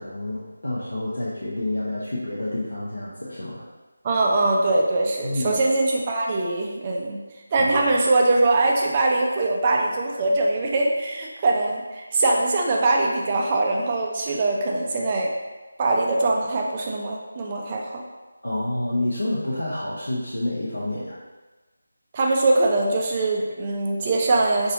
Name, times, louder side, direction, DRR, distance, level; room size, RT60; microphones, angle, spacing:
voice 1, 0.0-3.7 5.2-5.6 7.6-7.7 18.4-21.2, left 1 dB, 70° left, -7 dB, 0.7 m, -28 dB
voice 2, 4.0-7.2 7.5-15.3 15.8-18.0 22.1-24.7, right 2 dB, 25° right, -1 dB, 0.4 m, -22 dB
4.1 x 2.6 x 2.6 m, 1.2 s
figure-of-eight pair, 160°, 0 cm